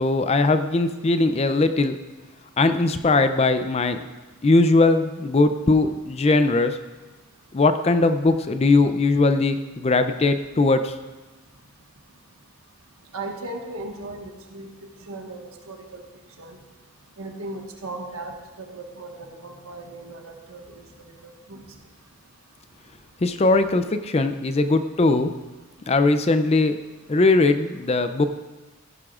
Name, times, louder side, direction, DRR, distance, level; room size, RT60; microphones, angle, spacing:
voice 1, 0.0-2.0 2.6-4.0 4.4-6.8 7.5-10.9 23.2-25.3 25.9-26.8 27.1-28.3, left 3 dB, 30° left, 9 dB, 0.4 m, -20 dB
voice 2, 13.1-14.7 15.1-16.0 16.4-16.6 17.2-20.8 21.5-21.6, right 2 dB, 70° right, 2 dB, 1.5 m, -37 dB
16.0 x 11.0 x 2.5 m, 1.2 s
head